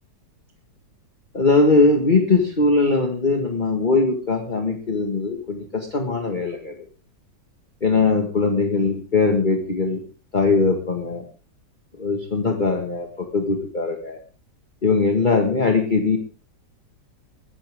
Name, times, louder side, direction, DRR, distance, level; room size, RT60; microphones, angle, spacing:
voice 1, 1.3-6.7 7.8-10.0 10.3-11.2 12.0-14.2 14.8-16.2, left 3 dB, 25° left, 4 dB, 1.9 m, -20 dB
21.0 x 14.0 x 3.7 m, 0.36 s
omnidirectional pair, 1.9 m